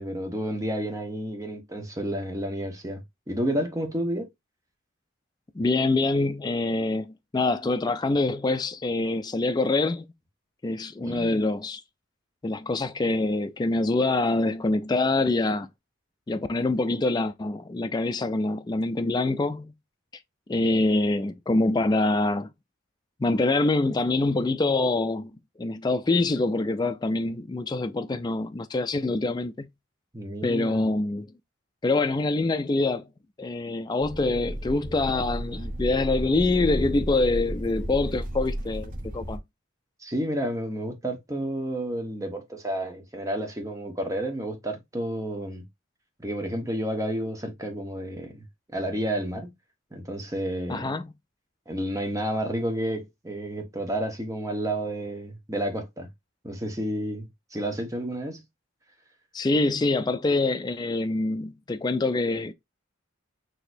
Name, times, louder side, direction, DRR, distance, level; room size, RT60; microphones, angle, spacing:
voice 1, 0.0-4.3 11.0-11.4 30.1-30.8 40.0-45.6 46.2-48.4 48.7-49.5 49.9-50.9 51.7-56.1 56.4-58.4, right 1 dB, 15° right, 1.0 m, -31 dB
voice 2, 5.6-10.1 10.6-11.8 12.4-15.7 16.3-19.7 20.5-22.5 23.2-25.3 25.6-29.7 30.4-31.3 31.8-33.1 33.4-39.4 50.7-51.1 59.3-62.5, left 2 dB, 20° left, 0.3 m, -25 dB
sound 1, 34.0-39.4, right 1 dB, 40° right, 0.8 m, -33 dB
6.2 x 2.9 x 2.6 m
head